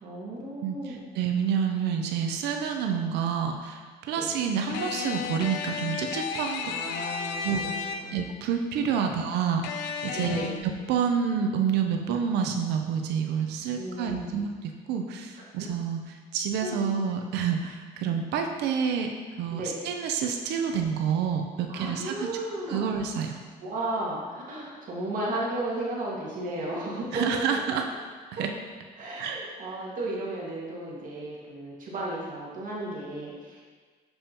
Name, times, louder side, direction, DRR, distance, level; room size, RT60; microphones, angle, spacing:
voice 1, 0.0-1.0 4.2-4.3 6.6-8.2 9.0-9.2 10.1-10.6 13.8-14.3 15.4-15.5 16.6-16.7 19.5-19.7 21.7-23.0 23.6-27.6 28.4-28.5 29.0-33.7, right 1 dB, 55° right, -4 dB, 1.8 m, -34 dB
voice 2, 0.6-6.7 7.4-7.7 8.1-16.0 16.3-19.1 19.4-22.3 22.7-23.4 27.1-27.8 28.4-28.5 29.2-29.4, right 7 dB, 85° right, 4 dB, 0.6 m, -28 dB
sound 1, 4.7-8.3 9.6-10.6, left 6 dB, 90° left, 0.5 m, -33 dB
6.9 x 5.5 x 2.9 m, 1.5 s
cardioid pair, 110°, 17 cm